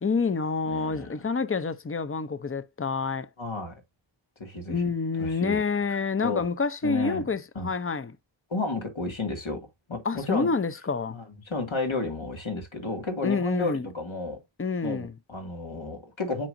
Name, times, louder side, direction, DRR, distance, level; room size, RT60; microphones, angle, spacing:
voice 1, 0.0-3.3 4.7-8.2 10.0-11.2 13.2-13.9 14.6-15.1, left 4 dB, 30° left, 0.7 m, -28 dB
voice 2, 0.7-1.2 3.4-3.8 4.4-4.9 5.2-5.6 6.2-6.4 6.8-7.3 7.6-7.7 8.5-9.6 9.9-10.5 11.1-14.4 14.8-16.5, left 3 dB, 80° left, 2.4 m, -32 dB
7.5 x 5.1 x 2.6 m
wide cardioid pair, 45°, 47 cm